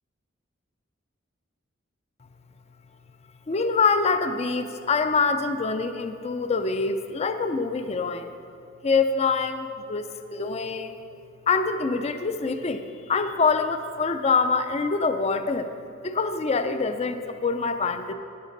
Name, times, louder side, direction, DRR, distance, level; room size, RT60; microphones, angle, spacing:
voice 1, 3.5-8.3 8.8-11.0 11.5-15.7 16.0-18.1, left 4 dB, 35° left, 9 dB, 0.4 m, -25 dB
10.5 x 6.7 x 3.9 m, 2.5 s
head